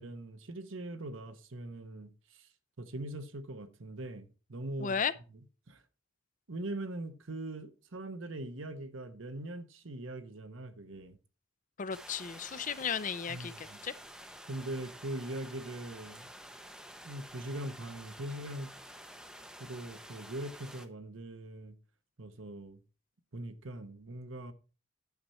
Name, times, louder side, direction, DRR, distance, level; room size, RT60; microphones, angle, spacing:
voice 1, 0.0-2.5 2.8-5.0 5.7-5.8 6.5-11.2 13.3-13.8 14.5-16.3 17.0-18.7 19.6-21.7 22.2-22.8 23.3-24.5, right 1 dB, 65° right, 1.1 m, -41 dB
voice 2, 4.8-5.1 11.8-13.9, left 7 dB, 40° left, 0.5 m, -34 dB
sound 1, 11.9-20.9, equal, 5° right, 0.7 m, -50 dB
9.7 x 7.0 x 4.3 m
head